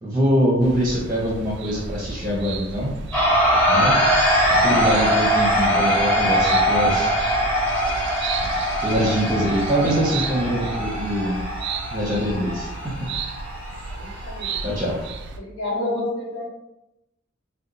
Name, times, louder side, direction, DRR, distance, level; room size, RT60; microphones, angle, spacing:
voice 1, 0.0-2.9 3.7-4.0 4.5-7.1 8.8-11.4 11.9-12.7 14.6-15.0, equal, 20° right, -4 dB, 0.6 m, -23 dB
sound 1, 0.6-15.4, right 4 dB, 60° right, 0.3 m, -33 dB
sound 2, 3.1-15.1, equal, 5° left, 1.0 m, -22 dB
voice 2, 13.9-14.6 15.3-16.5, left 2 dB, 80° left, -6 dB, 1.1 m, -29 dB
2.8 x 2.2 x 3.8 m, 0.93 s
head